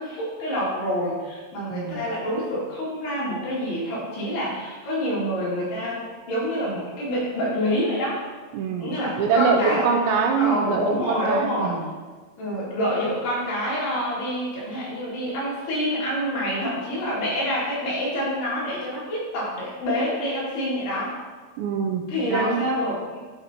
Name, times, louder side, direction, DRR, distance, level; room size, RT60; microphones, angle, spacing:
voice 1, 0.0-8.2 8.8-9.9 10.4-11.8 12.4-21.2 22.1-23.2, equal, 60° left, -7 dB, 4.5 m, -27 dB
voice 2, 8.5-11.9 21.6-22.7, right 5 dB, 80° right, 2 dB, 2.8 m, -24 dB
11.0 x 7.7 x 2.9 m, 1.4 s
omnidirectional pair, 5.4 m